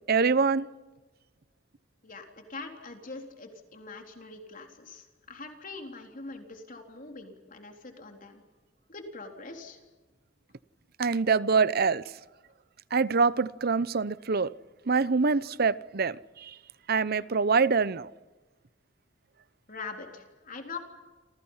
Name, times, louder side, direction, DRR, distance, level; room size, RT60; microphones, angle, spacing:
voice 1, 0.1-0.7 11.0-12.0 12.9-14.5 14.9-16.5 16.9-18.1, right 4 dB, 55° right, 17 dB, 0.8 m, -25 dB
voice 2, 2.0-8.4 8.9-9.8 19.7-20.8, left 3 dB, 45° left, 3 dB, 3.9 m, -43 dB
29.0 x 27.0 x 5.7 m, 1.2 s
head